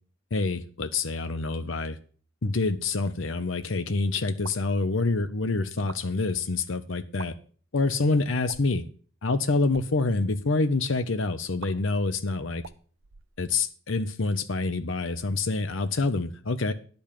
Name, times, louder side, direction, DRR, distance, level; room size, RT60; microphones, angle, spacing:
voice 1, 0.3-2.0 2.4-7.3 7.7-8.8 9.2-12.6 13.4-16.7, left 3 dB, 75° left, 0.8 m, -27 dB
sound 1, 4.4-4.7 5.7-6.0 7.1-7.3 8.5-8.8 9.6-9.9 11.6-11.7 12.6-13.8, right 5 dB, 80° right, 0.7 m, -44 dB
10.5 x 5.5 x 8.5 m
head